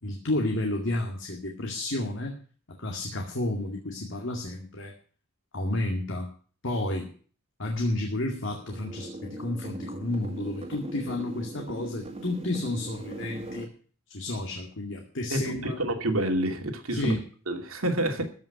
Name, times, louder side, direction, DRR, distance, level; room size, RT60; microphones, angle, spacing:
voice 1, 0.0-2.3 2.7-4.9 5.5-6.3 6.6-7.1 7.6-13.7 14.1-15.8 16.9-17.2, left 1 dB, 60° left, 1 dB, 2.2 m, -31 dB
sound 1, 8.6-13.6, right 1 dB, 30° right, 1.9 m, -39 dB
voice 2, 15.3-17.1 17.5-18.2, right 1 dB, 85° right, 4 dB, 2.5 m, -28 dB
14.5 x 5.8 x 9.0 m, 0.43 s
head